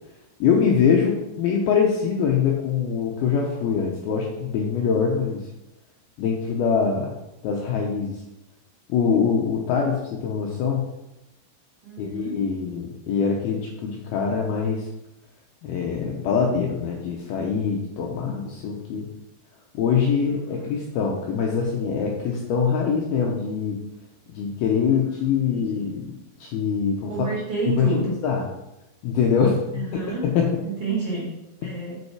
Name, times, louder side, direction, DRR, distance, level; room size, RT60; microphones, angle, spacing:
voice 1, 0.4-5.5 6.2-7.1 7.4-8.2 8.9-10.9 12.0-14.9 15.6-19.1 19.7-23.8 24.3-27.1 27.8-28.4 29.0-30.5, left 6 dB, 90° left, 0 dB, 2.2 m, -23 dB
voice 2, 11.8-12.4 20.2-20.7 24.9-25.9 27.1-28.1 29.7-30.3 30.6-32.0, right 4 dB, 50° right, -6 dB, 2.1 m, -31 dB
6.4 x 5.3 x 4.7 m, 0.94 s
omnidirectional pair, 5.2 m